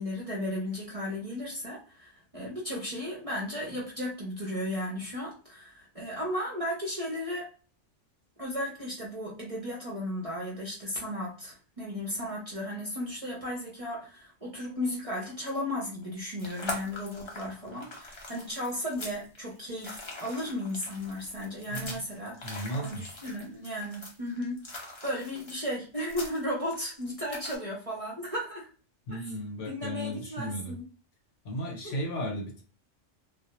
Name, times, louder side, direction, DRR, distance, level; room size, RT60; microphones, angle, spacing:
voice 1, 0.0-7.5 8.4-24.8 25.0-28.7 29.6-30.8 31.8-31.9, left 1 dB, 35° right, -4 dB, 0.7 m, -35 dB
sound 1, 16.0-27.6, left 1 dB, 35° left, 0.5 m, -42 dB
voice 2, 21.7-22.0 22.4-23.3 29.1-30.7 31.4-32.6, equal, 70° left, 1 dB, 1.1 m, -35 dB
2.2 x 2.1 x 2.9 m, 0.37 s
omnidirectional pair, 1.3 m